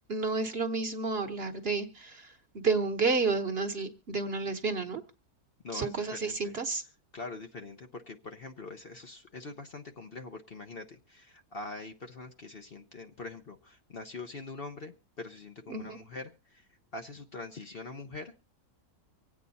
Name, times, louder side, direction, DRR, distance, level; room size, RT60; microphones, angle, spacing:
voice 1, 0.1-5.0 5.7-6.8 15.7-16.0, right 4 dB, 45° right, 6 dB, 1.2 m, -31 dB
voice 2, 5.6-6.5 7.1-18.3, left 3 dB, 45° left, 5 dB, 1.0 m, -43 dB
25.0 x 8.6 x 4.0 m, 0.31 s
omnidirectional pair, 1.6 m